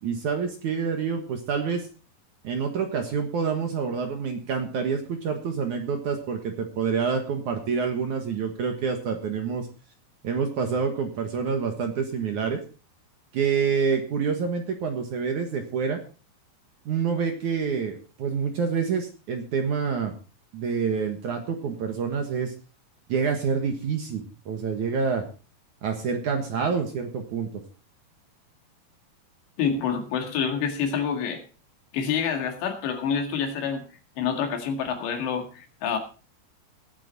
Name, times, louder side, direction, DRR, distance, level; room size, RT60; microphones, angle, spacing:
voice 1, 0.0-1.9 2.4-9.7 10.2-12.6 13.3-16.0 16.9-20.1 20.5-22.5 23.1-25.2 25.8-27.6, right 6 dB, 60° right, 4 dB, 2.3 m, -27 dB
voice 2, 29.6-31.4 31.9-33.8 34.2-36.0, left 7 dB, 80° left, 5 dB, 4.3 m, -27 dB
19.0 x 8.9 x 4.2 m, 0.35 s
omnidirectional pair, 5.0 m